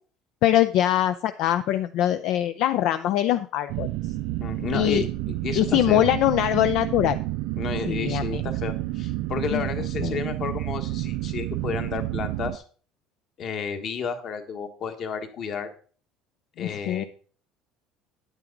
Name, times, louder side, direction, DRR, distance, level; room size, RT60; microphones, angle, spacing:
voice 1, 0.4-3.9 4.7-5.1 5.5-7.2 7.9-8.4 9.5-9.6 10.0-10.2 16.6-17.0, left 13 dB, 60° left, 11 dB, 0.5 m, -23 dB
sound 1, 3.7-12.6, right 17 dB, 70° right, 0.4 m, -30 dB
voice 2, 4.4-6.1 7.6-12.6 13.4-15.7 16.6-17.1, left 6 dB, 40° left, 7 dB, 1.4 m, -32 dB
9.7 x 8.9 x 3.9 m, 0.43 s
cardioid pair, 155°, 0 cm